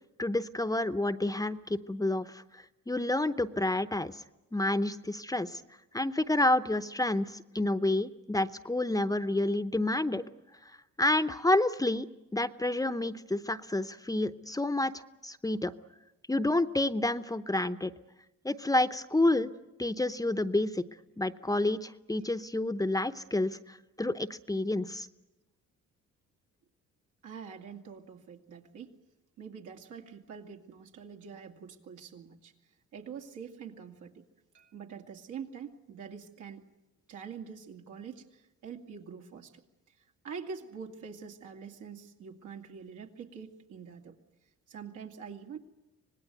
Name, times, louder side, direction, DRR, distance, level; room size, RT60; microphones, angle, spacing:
voice 1, 0.2-2.4 2.9-4.1 4.5-5.6 5.9-10.2 11.0-12.1 12.3-14.9 15.2-15.7 16.3-17.9 18.4-19.5 19.8-20.8 21.2-25.1, left 2 dB, 10° left, 12 dB, 0.8 m, -29 dB
voice 2, 27.2-28.9 29.4-32.5 32.9-34.2 34.5-36.6 37.1-39.6 40.2-44.1 44.7-45.6, right 6 dB, 80° right, 2 dB, 2.6 m, -45 dB
25.5 x 19.0 x 9.4 m, 1.0 s
cardioid pair, 90°, 30 cm